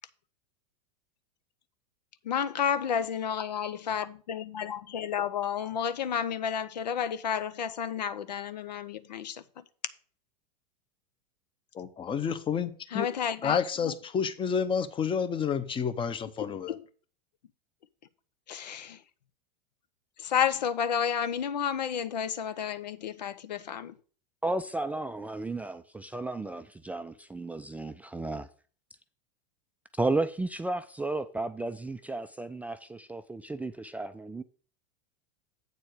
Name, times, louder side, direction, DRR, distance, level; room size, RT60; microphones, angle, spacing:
voice 1, 2.3-9.4 12.9-13.6 13.9-14.0 16.7-16.8 18.5-19.0 20.2-23.9, left 8 dB, 80° left, 0.6 m, -31 dB
voice 2, 11.7-13.1 13.4-16.8, left 7 dB, 25° left, 0.8 m, -30 dB
voice 3, 24.4-28.5 30.0-34.4, right 2 dB, 5° right, 0.3 m, -33 dB
8.1 x 4.4 x 6.3 m
hypercardioid pair, 90°, 21 cm